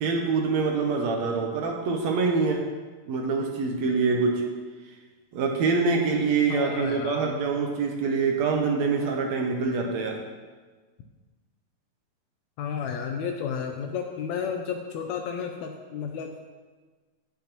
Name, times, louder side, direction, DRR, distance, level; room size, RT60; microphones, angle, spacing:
voice 1, 0.0-2.6 3.1-4.4 5.3-10.2, right 4 dB, 70° right, 1 dB, 1.8 m, -25 dB
voice 2, 6.5-7.4 12.6-16.5, left 6 dB, 80° left, 4 dB, 1.7 m, -32 dB
16.5 x 5.8 x 2.9 m, 1.4 s
omnidirectional pair, 3.6 m